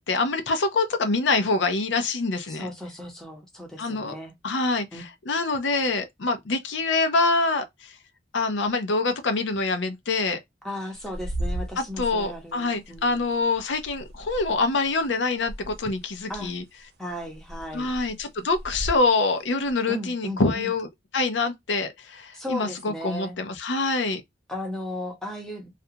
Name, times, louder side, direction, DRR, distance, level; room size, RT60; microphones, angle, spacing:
voice 1, 0.0-2.7 3.8-4.2 4.4-8.0 8.3-10.4 11.8-16.6 17.7-20.9 21.1-24.2, left 3 dB, 85° left, 0.6 m, -25 dB
voice 2, 2.5-4.3 4.9-5.0 10.6-13.2 16.3-16.5 17.0-17.9 19.9-20.7 22.3-23.4 24.5-25.7, left 1 dB, 5° left, 0.7 m, -35 dB
sound 1, 11.0-15.1 15.4-16.8 17.1-19.1 19.7-19.8, right 1 dB, 60° right, 0.6 m, -35 dB
2.5 x 2.2 x 2.7 m
head